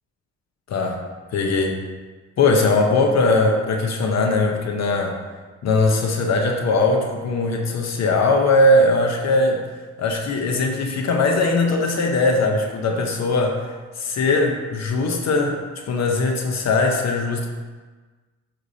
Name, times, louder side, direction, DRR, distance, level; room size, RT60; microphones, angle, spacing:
voice 1, 0.7-1.0 1.3-1.8 2.4-5.2 5.6-9.6 10.0-15.6 15.9-17.5, left 2 dB, 60° left, 3 dB, 0.9 m, -20 dB
8.0 x 5.9 x 2.8 m, 1.4 s
cardioid pair, 90°, 30 cm